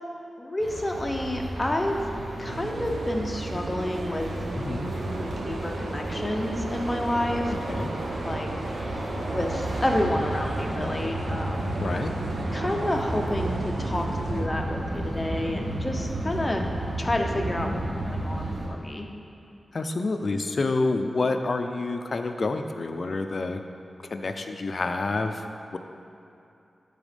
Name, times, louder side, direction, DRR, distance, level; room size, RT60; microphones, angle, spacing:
voice 1, 0.4-2.0 2.4-4.6 5.1-7.5 8.2-8.5 9.3-11.8 12.5-16.7 17.0-17.7 18.1-19.1, left 1 dB, 20° left, 2 dB, 0.8 m, -29 dB
sound 1, 0.6-18.7, right 1 dB, 60° right, 1.4 m, -32 dB
sound 2, 2.5-14.5, right 4 dB, 90° right, 0.4 m, -40 dB
voice 2, 4.5-4.9 7.5-7.9 11.8-12.1 17.7-17.8 19.7-23.6 24.0-25.5 25.7-25.8, left 3 dB, 50° left, 6 dB, 0.5 m, -28 dB
11.5 x 4.1 x 5.1 m, 2.7 s
wide cardioid pair, 85°, 0 cm